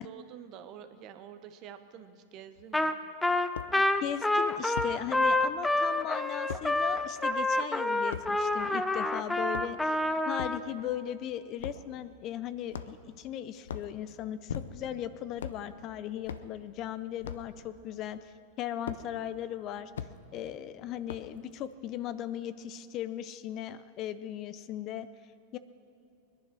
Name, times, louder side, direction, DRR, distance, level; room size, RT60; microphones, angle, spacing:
voice 1, 0.0-2.9, right 9 dB, 45° right, 9 dB, 1.1 m, -48 dB
sound 1, 2.6-2.7 3.6-3.7 4.8-5.0 6.5-6.7 8.1-8.3 9.4-9.9 10.4-10.6 11.6-11.9 12.7-13.1 13.6-13.9 14.5-15.0 15.4-15.6 16.3-16.5 17.2-17.5 18.9-19.0 19.9-20.1 21.1-21.4, left 8 dB, 85° left, 0.7 m, -38 dB
Trumpet, 2.7-3.0 3.2-10.6, left 2 dB, 5° left, 0.7 m, -28 dB
voice 2, 3.7-10.0 10.2-19.9 20.3-25.1 25.5-25.6, left 11 dB, 45° left, 13 dB, 0.6 m, -38 dB
20.5 x 10.5 x 6.2 m, 2.6 s
hypercardioid pair, 110°, 0 cm